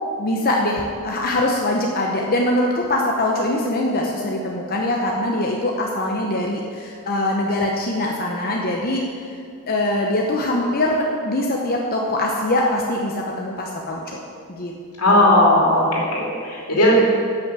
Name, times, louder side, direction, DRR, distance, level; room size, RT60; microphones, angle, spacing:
voice 1, 0.2-9.0 9.7-14.2 14.5-14.7 15.1-16.0, left 1 dB, 40° left, -1 dB, 0.9 m, -23 dB
voice 2, 15.0-17.0, left 1 dB, 85° left, -3 dB, 2.8 m, -16 dB
10.0 x 6.3 x 7.5 m, 2.3 s
head